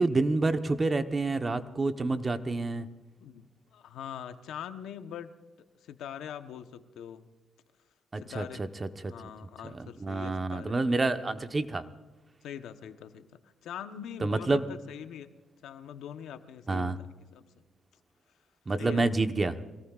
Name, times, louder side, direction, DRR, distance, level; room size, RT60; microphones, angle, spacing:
voice 1, 0.0-2.9 8.1-9.1 9.7-11.8 14.2-14.6 16.7-17.0 18.7-19.6, right 3 dB, 25° right, 8 dB, 1.0 m, -28 dB
voice 2, 3.2-5.3 5.8-7.3 8.2-8.7 9.0-10.7 12.4-15.3 15.6-17.4 18.7-19.1, left 9 dB, 80° left, 9 dB, 1.0 m, -43 dB
24.5 x 18.0 x 2.5 m, 1.2 s
cardioid pair, 90°, 0 cm